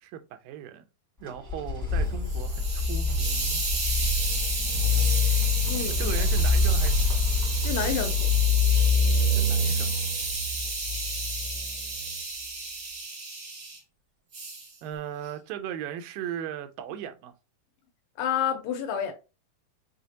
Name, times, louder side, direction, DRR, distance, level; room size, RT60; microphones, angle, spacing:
voice 1, 0.0-0.9 1.2-3.6 6.0-7.3 9.4-10.0 14.8-17.3, right 9 dB, 85° right, 2.3 m, -37 dB
sound 1, 1.3-12.1, left 3 dB, 10° right, 0.7 m, -26 dB
Hiss, 2.0-13.8 14.3-14.7, right 3 dB, 55° right, 1.1 m, -32 dB
voice 2, 5.7-6.2 7.6-8.1 18.2-19.1, left 8 dB, 80° left, 2.6 m, -29 dB
6.3 x 2.5 x 2.7 m
omnidirectional pair, 4.1 m